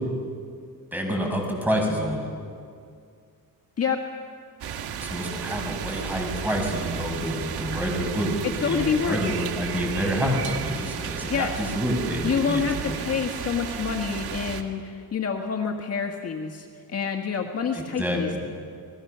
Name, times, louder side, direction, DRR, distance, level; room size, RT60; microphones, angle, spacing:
voice 1, 0.9-2.3 5.0-8.3 8.6-12.9 17.7-18.2, equal, 5° right, 1 dB, 6.2 m, -28 dB
sound 1, 4.6-14.6, right 8 dB, 85° right, 1.9 m, -33 dB
voice 2, 8.4-9.2 11.3-11.5 12.2-18.4, left 6 dB, 40° left, 3 dB, 1.6 m, -27 dB
30.0 x 20.5 x 6.8 m, 2.2 s
cardioid pair, 120°, 37 cm